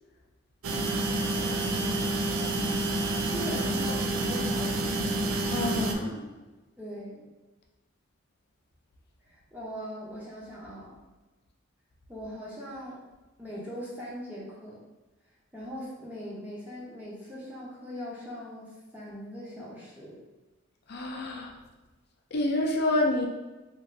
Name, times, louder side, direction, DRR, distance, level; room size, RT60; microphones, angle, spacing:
sound 1, 0.6-5.9, right 2 dB, 90° right, 0.4 m, -28 dB
voice 1, 1.3-2.4 3.3-5.2 6.8-7.2 9.3-10.9 12.1-13.0 13.4-14.8 15.5-20.2, equal, 10° right, -7 dB, 0.6 m, -40 dB
voice 2, 5.5-6.3 20.9-21.5 22.3-23.3, left 2 dB, 50° left, 1 dB, 0.4 m, -28 dB
2.9 x 2.5 x 2.6 m, 1.2 s
head